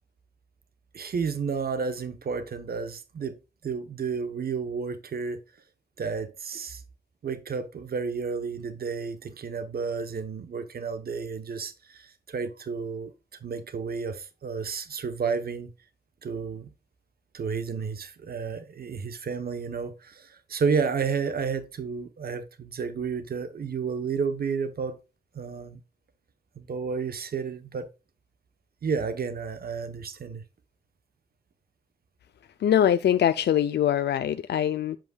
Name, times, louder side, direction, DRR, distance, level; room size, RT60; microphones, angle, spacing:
voice 1, 0.9-3.4 3.6-5.4 6.0-6.8 7.2-13.1 13.4-15.7 16.2-16.7 17.3-25.0 25.3-25.8 26.6-27.9 28.8-30.4, right 5 dB, 65° right, 0.9 m, -31 dB
voice 2, 32.6-35.0, left 10 dB, 85° left, 0.4 m, -23 dB
8.0 x 7.5 x 2.3 m
wide cardioid pair, 150°, 17 cm